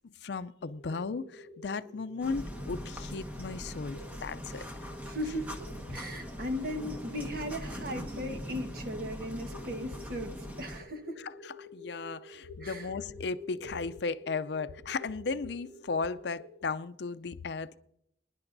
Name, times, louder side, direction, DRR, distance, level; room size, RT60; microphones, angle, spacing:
voice 1, 0.0-4.6 11.2-17.8, left 4 dB, 70° left, 0.5 m, -36 dB
sound 1, 0.6-16.6, left 1 dB, 80° right, 2.2 m, -50 dB
sound 2, 2.2-10.8, equal, 10° right, 1.4 m, -41 dB
voice 2, 5.0-11.2 12.6-12.9, equal, 55° right, 1.3 m, -37 dB
25.5 x 10.5 x 2.6 m
head